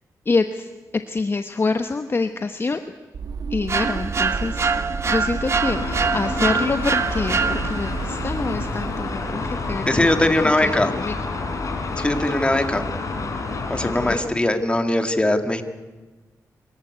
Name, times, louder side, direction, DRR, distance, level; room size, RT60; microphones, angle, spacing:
voice 1, 0.2-0.7 1.1-2.8 3.5-10.3 10.6-11.1 13.8-14.3, left 3 dB, 35° left, 8 dB, 1.0 m, -26 dB
sound 1, 3.1-10.6, right 5 dB, 80° right, 1.3 m, -32 dB
sound 2, 3.7-8.0, right 5 dB, 45° right, 1.3 m, -24 dB
sound 3, 5.6-14.2, left 3 dB, 55° left, 4.1 m, -29 dB
voice 2, 9.9-10.9 12.0-12.8 13.7-15.6, left 1 dB, 15° left, 7 dB, 2.0 m, -20 dB
24.0 x 15.0 x 9.5 m, 1.3 s
wide cardioid pair, 100°, 7 cm